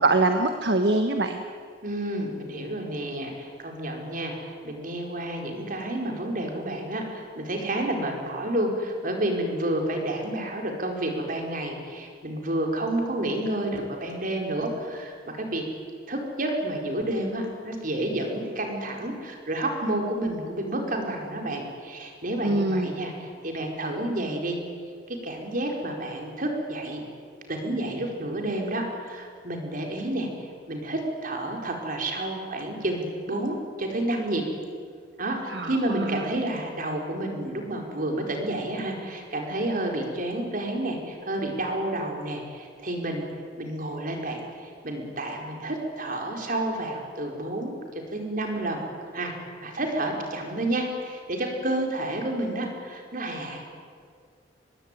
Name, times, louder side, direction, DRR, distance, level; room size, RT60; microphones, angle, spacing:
voice 1, 0.0-1.4 22.4-22.9 35.5-36.3, right 2 dB, 70° right, 6 dB, 1.4 m, -24 dB
voice 2, 1.8-15.6 16.1-24.6 25.1-27.0 27.5-34.4 35.2-43.2 43.6-48.8 49.1-49.3 49.6-53.6, right 1 dB, 50° right, 2 dB, 4.8 m, -30 dB
24.5 x 20.5 x 9.3 m, 2.1 s
head